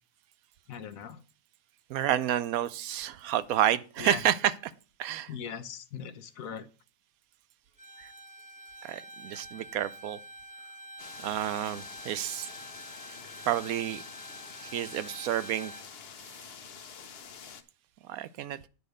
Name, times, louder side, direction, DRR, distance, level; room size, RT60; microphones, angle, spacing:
voice 1, 0.7-1.2 4.0-4.2 5.3-6.6, left 7 dB, 75° left, 1.2 m, -39 dB
voice 2, 1.9-4.7 5.0-5.3 8.0-8.1 8.8-10.2 11.2-12.5 13.5-14.0 14.7-15.7 18.1-18.7, right 11 dB, 85° right, 1.1 m, -30 dB
Bowed string instrument, 7.8-15.9, right 1 dB, 5° right, 0.9 m, -47 dB
sound 1, 11.0-17.6, left 6 dB, 50° left, 0.9 m, -47 dB
9.3 x 4.9 x 6.5 m
omnidirectional pair, 1.5 m